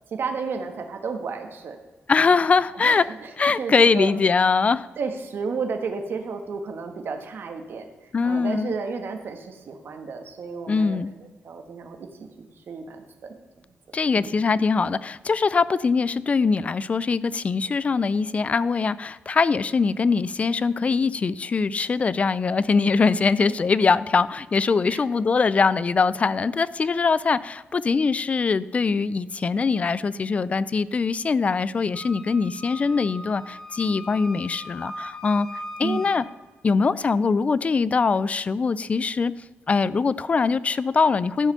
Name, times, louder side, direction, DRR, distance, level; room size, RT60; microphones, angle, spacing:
voice 1, 0.1-1.8 2.7-3.3 3.6-4.1 5.0-7.9 8.2-12.1 12.4-13.4 14.1-14.3 24.9-25.0 35.8-36.1, right 5 dB, 60° right, 5 dB, 1.3 m, -32 dB
voice 2, 2.1-3.0 3.4-4.9 8.1-8.7 10.7-11.1 13.9-35.5 35.8-36.2 36.6-39.3 39.7-41.5, left 4 dB, 30° left, 18 dB, 0.4 m, -22 dB
Wind instrument woodwind instrument, 31.9-36.3, left 1 dB, 10° left, 1.2 m, -39 dB
12.5 x 4.9 x 6.7 m, 1.2 s
wide cardioid pair, 125°, 4 cm